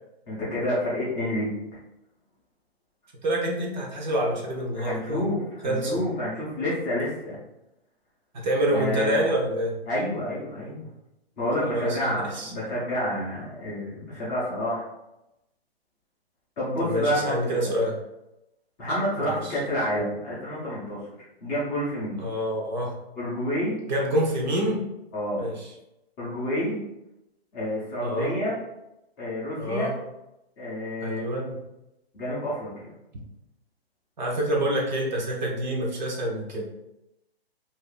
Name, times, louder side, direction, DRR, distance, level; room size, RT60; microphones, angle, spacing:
voice 1, 0.3-1.5 4.8-7.4 8.7-9.3 9.9-10.9 11.4-14.9 16.6-17.7 18.8-21.0 21.4-22.2 23.2-23.8 25.1-25.6 26.2-26.8 27.5-28.6 29.2-29.9 30.6-31.3 32.1-32.9, left 1 dB, 10° left, -9 dB, 0.7 m, -29 dB
voice 2, 3.2-5.2 5.6-6.0 8.3-9.8 11.6-12.5 16.8-17.9 19.2-19.5 22.2-22.9 23.9-24.8 25.4-25.7 28.0-28.3 29.6-30.0 31.0-31.6 34.2-36.6, right 1 dB, 45° right, -1 dB, 0.8 m, -27 dB
2.7 x 2.5 x 3.7 m, 0.90 s
hypercardioid pair, 160°, 31 cm